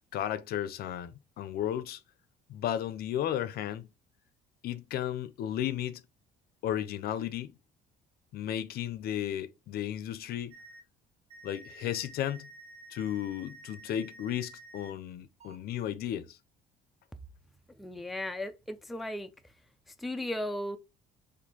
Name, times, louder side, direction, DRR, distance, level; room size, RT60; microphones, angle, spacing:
voice 1, 0.1-2.0 2.5-3.8 4.6-6.0 6.6-7.5 8.3-10.5 11.4-12.5 12.9-16.4, left 11 dB, 65° left, 0.5 m, -34 dB
sound 1, 10.5-10.8 11.3-14.9 15.4-15.6, right 2 dB, 35° right, 0.9 m, -51 dB
voice 2, 17.8-19.3 20.0-20.8, left 1 dB, ahead, 0.3 m, -36 dB
4.2 x 2.7 x 2.7 m
cardioid pair, 110°, 17 cm